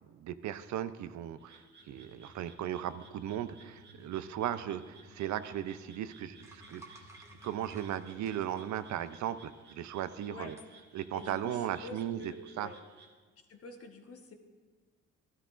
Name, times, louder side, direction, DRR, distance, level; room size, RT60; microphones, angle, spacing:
voice 1, 0.0-7.0 7.4-10.5 10.9-12.7, right 11 dB, 70° right, 13 dB, 0.5 m, -37 dB
Frog, 1.4-13.1, right 4 dB, 35° right, 1.5 m, -60 dB
sound 1, 1.8-8.6, left 1 dB, 80° left, 1.3 m, -59 dB
sound 2, 6.4-9.6 10.6-10.7 11.3-11.6, right 2 dB, 10° right, 1.4 m, -56 dB
voice 2, 11.1-12.8 13.5-14.3, left 3 dB, 50° left, 4 dB, 1.2 m, -47 dB
13.0 x 12.5 x 2.5 m, 1.4 s
cardioid pair, 90°, 30 cm